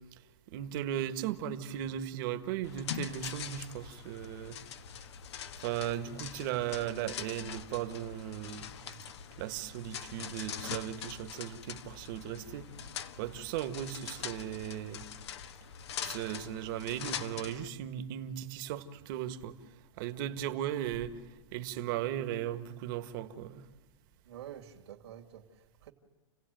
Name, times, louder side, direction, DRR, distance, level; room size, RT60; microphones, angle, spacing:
voice 1, 0.5-4.6 5.6-8.7 9.4-12.7 13.2-15.0 16.0-19.6 20.0-21.2 21.5-23.6, right 11 dB, 50° right, 1.6 m, -37 dB
sound 1, 2.6-17.7, left 8 dB, 75° left, 1.4 m, -43 dB
voice 2, 8.7-9.1 24.2-25.9, right 10 dB, 75° right, 2.6 m, -49 dB
29.5 x 16.0 x 9.3 m
hypercardioid pair, 140°, 14 cm